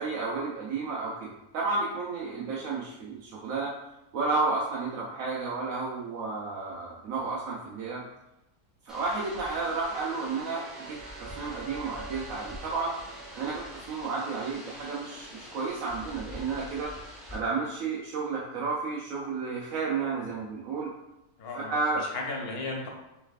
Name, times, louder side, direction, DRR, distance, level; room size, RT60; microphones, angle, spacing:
voice 1, 0.0-3.7 4.1-8.0 8.8-12.9 13.3-16.9 17.3-20.9 21.7-22.1, right 4 dB, 65° right, -4 dB, 1.0 m, -32 dB
sound 1, 8.9-17.4, left 1 dB, ahead, 1.0 m, -45 dB
sound 2, 9.0-15.9, right 5 dB, 80° right, 1.2 m, -49 dB
voice 2, 21.4-22.9, left 2 dB, 70° left, 0 dB, 1.3 m, -35 dB
6.4 x 3.3 x 2.4 m, 0.95 s
omnidirectional pair, 1.7 m